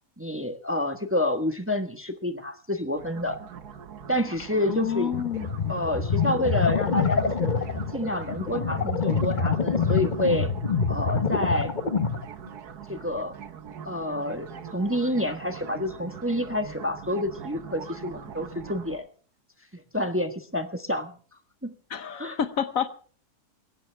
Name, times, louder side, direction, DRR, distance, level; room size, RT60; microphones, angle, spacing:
voice 1, 0.2-3.4 4.1-5.1 5.7-7.5 7.9-10.5 10.9-11.7 12.9-13.3 13.8-19.1 19.9-21.1 21.6-21.7 22.2-22.4, left 1 dB, 10° right, 7 dB, 1.2 m, -28 dB
sound 1, 3.0-19.0, right 7 dB, 85° right, 1.7 m, -42 dB
voice 2, 4.7-5.5 21.9-23.0, left 8 dB, 65° left, 12 dB, 1.3 m, -29 dB
sound 2, 5.1-12.2, left 5 dB, 30° left, 1.1 m, -26 dB
21.5 x 17.5 x 3.4 m, 0.42 s
omnidirectional pair, 1.6 m